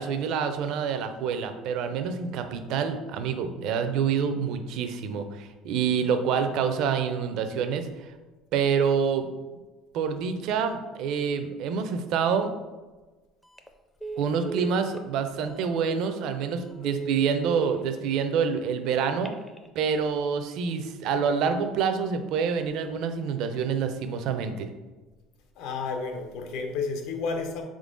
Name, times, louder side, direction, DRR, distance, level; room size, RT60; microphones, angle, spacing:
voice 1, 0.0-8.1 8.5-9.3 9.9-12.5 14.2-19.3 19.8-24.7, right 6 dB, 65° right, 8 dB, 0.5 m, -27 dB
Telephone, 13.4-13.7 14.0-15.1 15.6-15.7 16.1-16.3 16.7-17.8 19.0-19.7, right 6 dB, 5° left, 0.4 m, -36 dB
voice 2, 25.6-27.6, left 4 dB, 70° left, 4 dB, 0.7 m, -31 dB
3.7 x 3.6 x 3.7 m, 1.2 s
cardioid pair, 130°, 0 cm